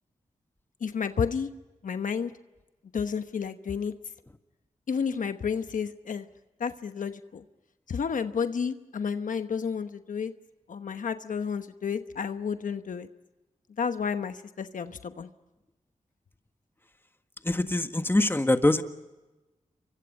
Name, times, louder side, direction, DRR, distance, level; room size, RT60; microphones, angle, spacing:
voice 1, 0.8-1.5 1.8-2.3 2.9-3.9 4.9-6.3 6.6-7.4 7.9-10.3 10.7-13.1 13.8-15.3, left 6 dB, 75° left, 9 dB, 1.1 m, -31 dB
voice 2, 17.4-18.8, left 1 dB, 15° left, 8 dB, 1.6 m, -23 dB
28.5 x 24.0 x 5.4 m, 1.1 s
cardioid pair, 60°, 13 cm